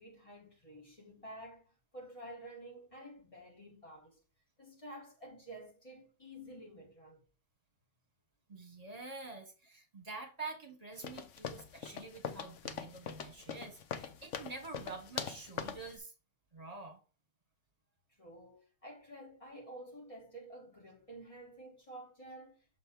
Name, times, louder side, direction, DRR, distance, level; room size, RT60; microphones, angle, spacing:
voice 1, 0.0-4.2 4.6-7.2 11.4-11.5 18.2-22.6, right 1 dB, 30° left, 1.8 m, -51 dB
voice 2, 8.5-16.1 16.5-17.0, right 3 dB, 35° right, 1.6 m, -47 dB
sound 1, 11.0-15.9, left 8 dB, 85° left, 1.1 m, -42 dB
6.8 x 3.4 x 4.4 m
omnidirectional pair, 1.2 m